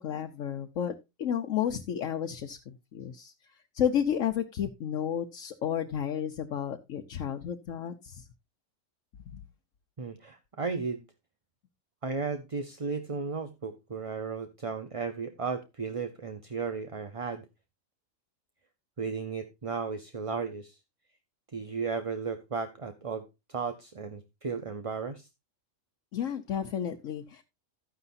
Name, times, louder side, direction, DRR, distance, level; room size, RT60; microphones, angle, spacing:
voice 1, 0.0-3.3 3.7-8.3 9.3-9.4 26.1-27.4, left 9 dB, 75° left, 1.2 m, -32 dB
voice 2, 10.0-11.0 12.0-17.5 19.0-20.8 21.5-25.3, right 5 dB, 30° right, 0.7 m, -35 dB
12.5 x 9.7 x 2.6 m
omnidirectional pair, 1.4 m